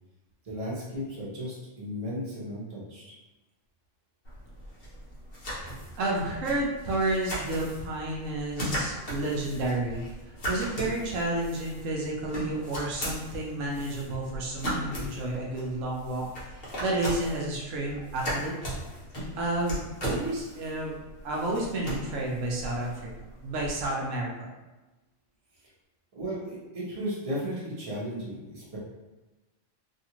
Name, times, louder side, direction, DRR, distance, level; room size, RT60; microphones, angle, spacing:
voice 1, 0.4-3.0 26.1-28.8, equal, 30° right, -7 dB, 0.9 m, -35 dB
sound 1, 4.2-23.9, equal, 45° left, 1.0 m, -38 dB
voice 2, 6.0-18.5 19.4-23.1 23.4-24.5, right 2 dB, 80° right, -2 dB, 1.0 m, -31 dB
2.7 x 2.4 x 2.9 m, 1.1 s
omnidirectional pair, 1.3 m